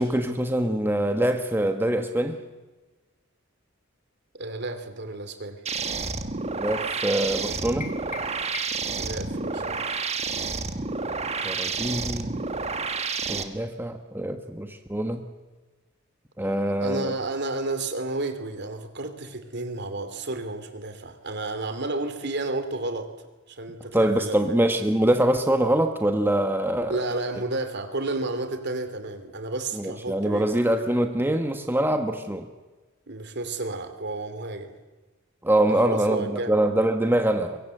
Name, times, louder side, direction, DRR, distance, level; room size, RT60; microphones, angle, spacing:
voice 1, 0.0-2.4 6.5-7.9 11.4-12.3 13.3-15.2 16.4-17.1 23.9-27.0 29.7-32.5 35.4-37.6, right 1 dB, 10° right, 5 dB, 1.3 m, -24 dB
voice 2, 4.3-5.6 9.0-9.8 16.8-23.1 23.5-24.6 26.9-30.6 33.1-34.8 35.7-36.5, right 2 dB, 55° right, 9 dB, 2.8 m, -31 dB
sound 1, 5.7-13.4, right 4 dB, 30° right, 1.5 m, -30 dB
sound 2, 7.8-9.0, left 4 dB, 35° left, 2.3 m, -40 dB
23.5 x 22.5 x 7.9 m, 1.2 s
head